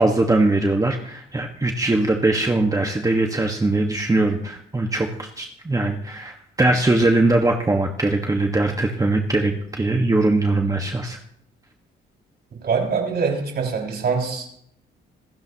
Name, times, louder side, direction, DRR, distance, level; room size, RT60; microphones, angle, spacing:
voice 1, 0.0-11.2, right 2 dB, 15° right, 3 dB, 1.5 m, -21 dB
voice 2, 12.6-14.5, right 5 dB, 55° right, 1 dB, 5.9 m, -23 dB
26.5 x 13.0 x 3.0 m, 0.69 s
cardioid pair, 90°, 20 cm